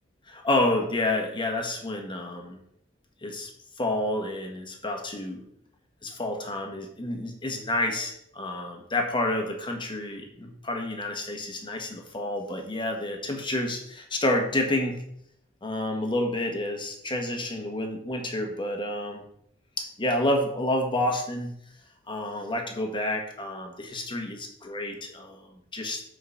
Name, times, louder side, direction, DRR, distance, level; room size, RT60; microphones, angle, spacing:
voice 1, 0.3-2.6 3.2-3.5 3.8-5.4 6.0-15.0 15.6-19.2 19.8-21.5 22.1-26.0, left 1 dB, 25° left, 2 dB, 1.5 m, -29 dB
7.7 x 5.0 x 5.7 m, 0.71 s
head